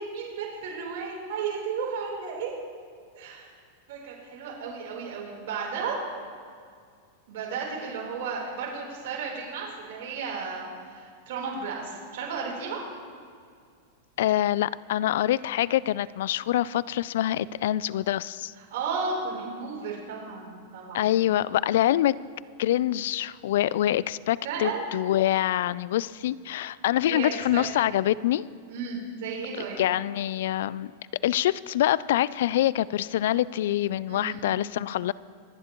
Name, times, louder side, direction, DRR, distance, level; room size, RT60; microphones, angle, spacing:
voice 1, 0.0-2.5 3.1-3.5 3.9-6.0 7.3-12.8 18.6-21.1 24.4-24.8 27.0-27.6 28.7-29.8 34.1-34.4, right 5 dB, 65° right, -3 dB, 3.8 m, -34 dB
voice 2, 14.2-18.5 20.9-22.1 22.6-28.4 29.8-30.9 31.2-35.1, left 13 dB, 70° left, 20 dB, 0.3 m, -25 dB
26.5 x 10.0 x 3.1 m, 2.2 s
supercardioid pair, 135°, 0 cm